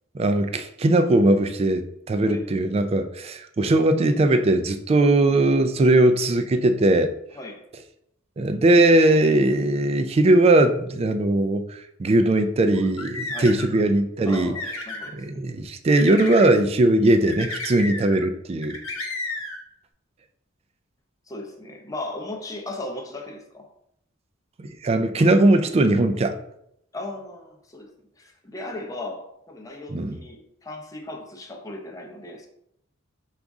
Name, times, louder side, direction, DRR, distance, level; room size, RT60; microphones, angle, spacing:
voice 1, 0.1-7.1 8.4-14.5 15.1-18.8 24.6-26.4 29.9-30.2, right 2 dB, 30° right, 8 dB, 0.3 m, -19 dB
voice 2, 7.3-7.6 13.3-13.6 14.3-15.2 21.3-23.7 26.9-32.5, left 2 dB, 15° left, 2 dB, 0.6 m, -37 dB
sound 1, 12.7-13.8 14.3-15.1 15.9-16.5 17.3-18.3 18.6-19.6, left 2 dB, 80° left, 0.9 m, -33 dB
5.0 x 2.4 x 3.5 m, 0.75 s
head